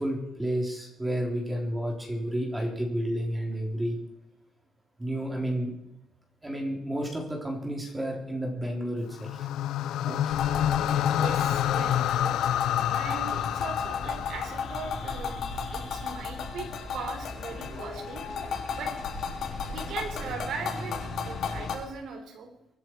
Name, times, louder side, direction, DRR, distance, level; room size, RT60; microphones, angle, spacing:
voice 1, 0.0-4.0 5.0-5.7 6.4-9.5 10.0-10.3, right 1 dB, 10° right, 0 dB, 3.6 m, -31 dB
sound 1, 9.1-15.4, left 11 dB, 85° left, 0.5 m, -28 dB
sound 2, 10.3-21.8, left 5 dB, 65° left, 3.8 m, -34 dB
voice 2, 11.1-12.4 12.8-15.5 15.7-18.2 18.7-18.9 19.7-22.5, right 5 dB, 70° right, 3 dB, 4.0 m, -39 dB
23.5 x 10.5 x 4.7 m, 0.81 s
cardioid pair, 140°, 0 cm